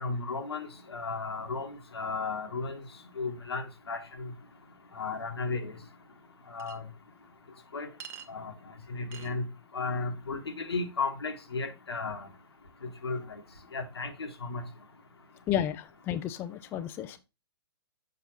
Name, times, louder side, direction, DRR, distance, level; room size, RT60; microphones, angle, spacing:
voice 1, 0.0-2.8 3.2-4.3 5.0-5.7 6.5-6.8 7.7-7.9 8.3-8.5 8.9-9.4 9.7-12.3 12.8-13.2 13.7-14.6, left 4 dB, 85° left, 1.4 m, -34 dB
Chink clink, 6.6-6.8 8.0-8.3 9.1-9.3, right 8 dB, 20° right, 0.7 m, -44 dB
voice 2, 15.5-17.2, left 10 dB, 15° left, 0.4 m, -32 dB
6.6 x 5.6 x 2.9 m
hypercardioid pair, 135°, 13 cm